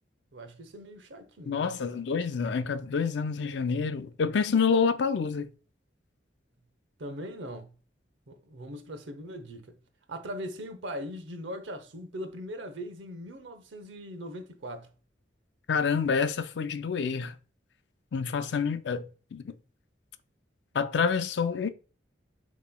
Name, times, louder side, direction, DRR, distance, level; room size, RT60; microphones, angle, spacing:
voice 1, 0.3-2.0 7.0-7.7 8.3-9.8 10.1-14.9, equal, 85° right, 0.7 m, -40 dB
voice 2, 1.5-5.5 15.7-17.3 18.1-19.0 19.3-19.4 20.7-21.7, left 5 dB, 70° left, 0.4 m, -27 dB
6.7 x 3.0 x 2.2 m
head